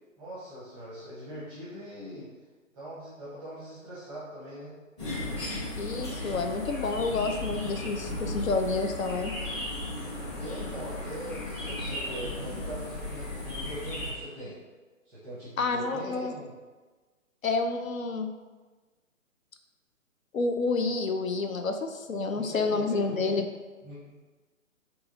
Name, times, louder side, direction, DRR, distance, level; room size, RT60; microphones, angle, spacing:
voice 1, 0.2-2.3 2.7-4.7 10.4-14.6 15.0-16.5 22.3-23.3 23.8-24.1, right 1 dB, 5° right, -10 dB, 0.6 m, -42 dB
sound 1, 5.0-14.1, left 1 dB, 20° left, 0.9 m, -35 dB
voice 2, 5.8-9.3 15.6-16.3 17.4-18.3 20.3-23.5, left 3 dB, 75° left, 6 dB, 0.6 m, -29 dB
3.7 x 3.0 x 3.6 m, 1.3 s
figure-of-eight pair, 135°, 41 cm